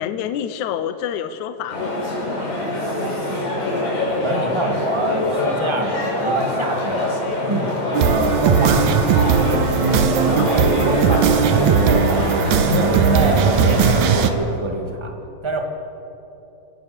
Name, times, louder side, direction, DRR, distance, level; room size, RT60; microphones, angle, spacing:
voice 1, 0.0-1.9 10.4-10.5 10.8-11.3, left 9 dB, 75° left, 10 dB, 1.9 m, -28 dB
Outside bar packed with hundreds of people, 1.7-14.3, left 1 dB, 55° left, 6.8 m, -24 dB
voice 2, 2.8-3.3 4.2-9.0 10.2-15.1 15.4-15.6, right 2 dB, 20° right, 2 dB, 0.8 m, -26 dB
sound 1, 7.9-14.3, right 7 dB, 70° right, 1.8 m, -18 dB
29.0 x 17.5 x 6.9 m, 2.9 s
omnidirectional pair, 4.2 m